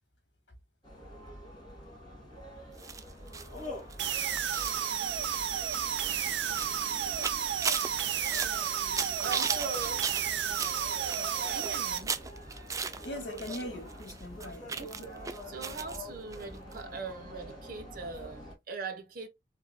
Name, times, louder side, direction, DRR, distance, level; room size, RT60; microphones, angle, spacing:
sound 1, 0.8-18.6, left 1 dB, 25° left, 2.5 m, -46 dB
sound 2, 2.8-13.6 13.9-16.0 16.3-16.4 16.7-16.8, right 5 dB, 20° right, 0.4 m, -37 dB
sound 3, 4.0-12.0, right 9 dB, 75° right, 0.7 m, -32 dB
voice 1, 9.2-10.0 11.4-12.2 14.7-15.1 15.4-19.3, right 4 dB, 50° right, 1.2 m, -40 dB
voice 2, 13.0-14.8, left 1 dB, 80° left, 2.4 m, -41 dB
4.3 x 3.5 x 2.2 m
head